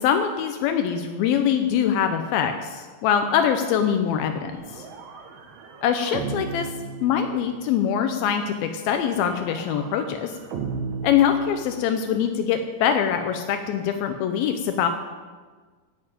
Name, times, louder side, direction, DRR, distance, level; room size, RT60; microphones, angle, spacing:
voice 1, 0.0-4.9 5.8-6.7 7.0-10.3 11.0-14.9, left 8 dB, 80° left, 6 dB, 2.6 m, -23 dB
sound 1, 4.5-7.8 8.9-12.1, right 4 dB, 80° right, 3.2 m, -36 dB
16.0 x 6.7 x 8.6 m, 1.4 s
omnidirectional pair, 4.2 m